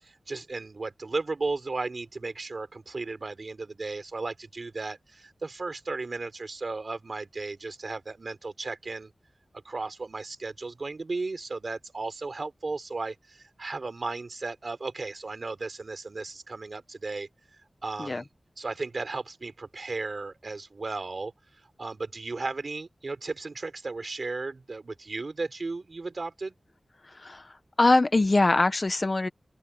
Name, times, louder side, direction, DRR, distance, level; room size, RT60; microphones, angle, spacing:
voice 1, 0.0-9.1 9.6-17.3 17.8-18.3 18.6-21.3 21.8-26.6, right 3 dB, 55° right, 4.0 m, -35 dB
voice 2, 27.1-29.3, left 2 dB, 35° left, 1.2 m, -23 dB
open air
wide cardioid pair, 100°, 0 cm